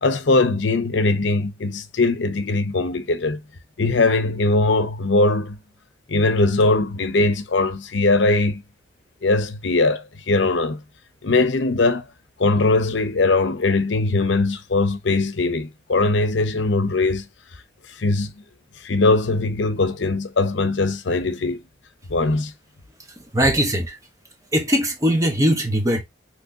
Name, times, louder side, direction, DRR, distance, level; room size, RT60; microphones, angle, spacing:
voice 1, 0.0-3.4 3.8-5.6 6.1-8.6 9.2-10.8 11.2-12.1 12.4-17.3 17.9-18.3 18.8-21.6 22.1-22.5, left 3 dB, 85° left, 0.7 m, -20 dB
voice 2, 23.2-24.0 24.5-26.0, equal, 15° right, 1.0 m, -20 dB
6.2 x 3.2 x 2.7 m
head